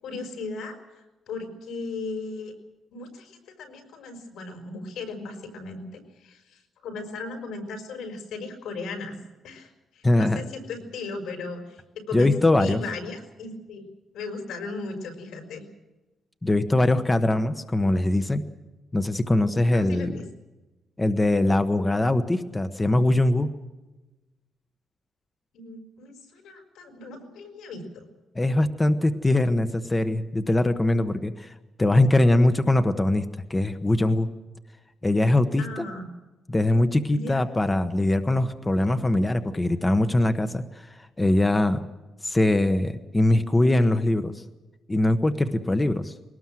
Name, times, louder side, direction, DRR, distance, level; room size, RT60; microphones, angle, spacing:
voice 1, 0.0-2.6 2.9-9.2 9.4-13.8 14.1-15.6 19.7-20.2 25.5-28.1 35.6-36.1 37.1-37.4, left 3 dB, 85° left, 6 dB, 5.3 m, -37 dB
voice 2, 10.0-10.4 12.1-12.8 16.4-18.4 18.9-20.1 21.0-23.5 28.3-31.5 31.8-33.2 33.5-34.3 35.0-35.8 36.5-41.8 42.2-44.4 44.9-46.1, left 1 dB, 15° left, 9 dB, 1.0 m, -22 dB
22.5 x 19.0 x 7.6 m, 1.1 s
cardioid pair, 140°, 0 cm